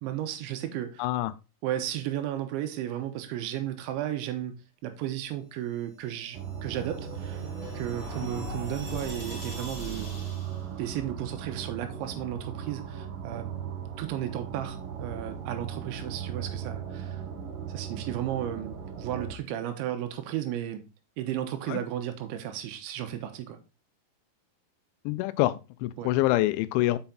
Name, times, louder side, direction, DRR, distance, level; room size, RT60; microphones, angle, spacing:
voice 1, 0.0-1.1 1.6-4.5 4.8-7.4 7.8-10.1 10.8-13.5 14.0-17.2 17.7-20.8 21.2-23.6 26.0-26.1, right 11 dB, 90° right, 3.3 m, -34 dB
voice 2, 1.0-1.3 21.7-21.8 25.1-27.0, left 16 dB, 90° left, 3.0 m, -26 dB
sound 1, 6.1-10.6, left 1 dB, 25° left, 3.1 m, -41 dB
sound 2, 6.3-19.3, right 8 dB, 70° right, 2.2 m, -38 dB
6.9 x 5.8 x 3.8 m
omnidirectional pair, 5.2 m